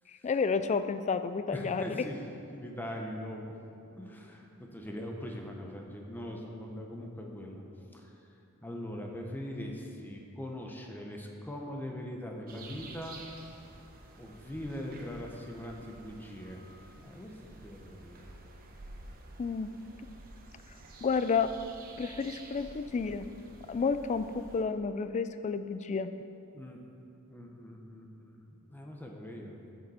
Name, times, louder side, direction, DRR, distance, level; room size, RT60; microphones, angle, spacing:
voice 1, 0.2-2.1 19.4-19.7 21.0-21.5 22.0-23.3 23.7-26.1, left 5 dB, 30° left, 11 dB, 0.3 m, -30 dB
voice 2, 1.5-2.2 2.5-3.6 3.9-8.1 8.6-13.2 14.2-16.6 17.0-17.3 17.6-18.3 26.5-26.8 27.3-29.7, equal, 10° left, 1 dB, 0.7 m, -41 dB
sound 1, 12.5-24.6, right 2 dB, 40° right, 0.9 m, -51 dB
11.0 x 6.6 x 4.2 m, 2.7 s
head